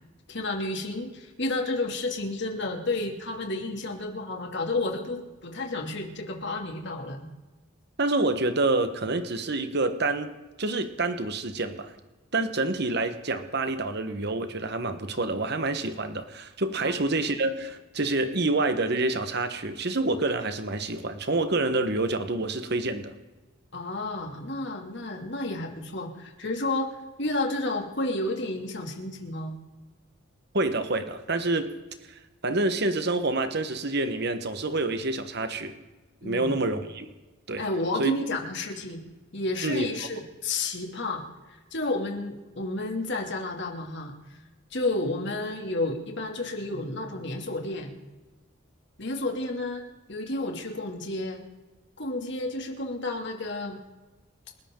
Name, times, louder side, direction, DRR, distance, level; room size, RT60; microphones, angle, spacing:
voice 1, 0.3-7.3 16.8-16.9 23.7-29.5 36.2-36.5 37.6-39.0 39.3-41.2 41.5-44.1 44.7-47.9 49.0-49.8 50.1-51.4 52.0-53.8, left 2 dB, 55° left, 2 dB, 2.7 m, -31 dB
voice 2, 8.0-10.3 10.6-11.9 12.3-23.1 30.5-31.7 32.4-35.8 36.2-37.1 37.5-37.6 38.0-38.1 39.6-39.9, right 2 dB, 55° right, 9 dB, 1.3 m, -27 dB
28.5 x 13.0 x 3.9 m, 1.2 s
head